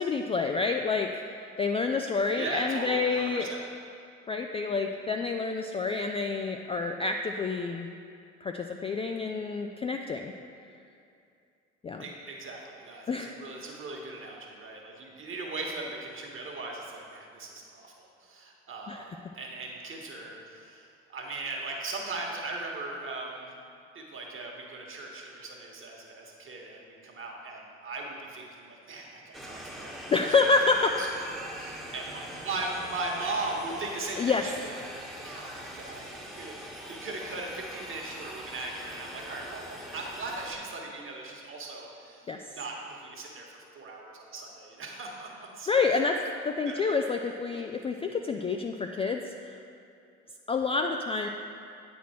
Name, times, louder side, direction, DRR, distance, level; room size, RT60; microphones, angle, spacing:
voice 1, 0.0-3.5 4.3-7.9 8.4-10.3 11.8-12.0 13.1-13.4 18.9-19.0 30.1-30.9 34.2-34.4 42.3-42.4 45.7-46.2 46.4-49.6 50.5-51.3, left 4 dB, 20° left, 4 dB, 0.3 m, -28 dB
voice 2, 2.4-3.6 12.0-23.5 23.9-30.3 31.0-45.7 46.7-46.8 47.5-47.6, right 2 dB, 35° right, -1 dB, 1.5 m, -39 dB
sound 1, 29.3-40.5, equal, ahead, 1.1 m, -42 dB
9.1 x 4.3 x 4.4 m, 2.5 s
hypercardioid pair, 55°, 34 cm